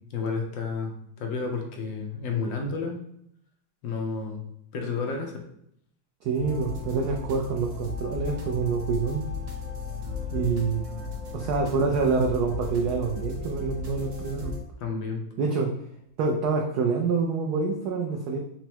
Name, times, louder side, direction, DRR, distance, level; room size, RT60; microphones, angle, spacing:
voice 1, 0.1-0.9 1.2-3.0 3.8-4.4 4.7-5.4 10.9-11.0 14.8-15.2, left 4 dB, 70° left, 2 dB, 1.4 m, -31 dB
voice 2, 6.2-9.2 10.3-10.8 11.3-14.5 15.4-15.7 16.2-18.4, right 4 dB, 85° right, 1 dB, 0.8 m, -26 dB
sound 1, 6.3-14.6, left 4 dB, 50° right, 1.0 m, -35 dB
4.4 x 2.0 x 4.3 m, 0.71 s
omnidirectional pair, 2.2 m